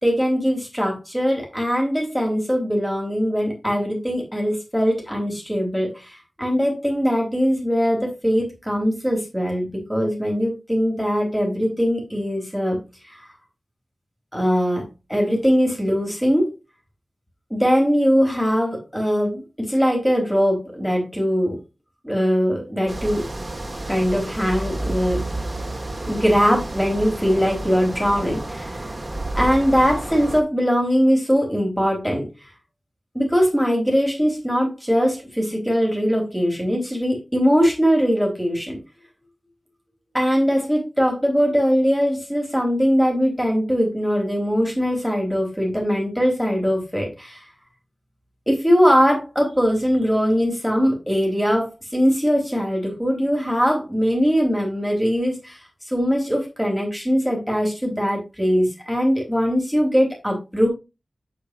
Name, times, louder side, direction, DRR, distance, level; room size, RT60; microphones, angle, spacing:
voice 1, 0.0-12.8 13.1-13.3 14.3-16.5 17.5-21.6 22.0-23.3 23.9-25.3 26.0-28.8 29.3-32.3 33.1-38.8 40.1-47.4 48.5-55.6 55.9-60.7, equal, 5° left, -1 dB, 4.0 m, -21 dB
sound 1, 22.9-30.4, right 1 dB, 25° right, 1.8 m, -30 dB
8.4 x 7.9 x 2.5 m, 0.25 s
wide cardioid pair, 90°, 0 cm